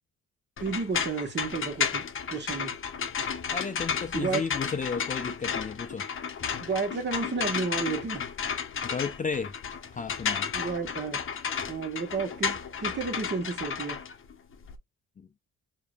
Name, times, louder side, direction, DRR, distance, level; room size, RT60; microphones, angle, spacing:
sound 1, 0.6-14.8, left 7 dB, 45° left, 0.8 m, -33 dB
voice 1, 0.6-2.8 4.1-4.4 6.6-8.3 10.5-11.2 11.7-14.0, right 4 dB, 35° right, 1.3 m, -32 dB
voice 2, 3.5-6.0 8.8-9.5 9.9-10.5 15.2-15.3, left 5 dB, 25° left, 0.5 m, -33 dB
4.8 x 2.8 x 2.3 m
cardioid pair, 90°, 30 cm